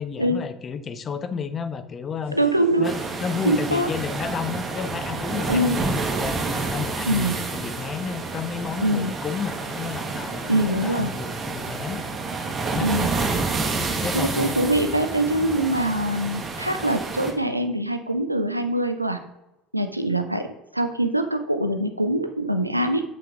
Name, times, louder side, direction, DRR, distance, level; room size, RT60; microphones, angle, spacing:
voice 1, 0.0-2.4 2.8-12.0 12.7-12.9 14.0-14.6 15.5-15.9, left 6 dB, 30° left, 11 dB, 0.8 m, -32 dB
sound 1, 2.2-11.3, equal, 75° left, 2.4 m, -47 dB
voice 2, 2.3-2.9 3.4-3.9 5.5-5.8 7.1-7.4 8.8-9.1 10.5-11.1 12.8-13.1 14.1-19.2 19.7-20.5 20.7-23.0, right 1 dB, 90° right, 8 dB, 0.5 m, -23 dB
sound 2, 2.8-17.3, right 3 dB, 30° right, 1.7 m, -29 dB
8.0 x 5.8 x 3.6 m, 0.93 s
figure-of-eight pair, 65°, 0 cm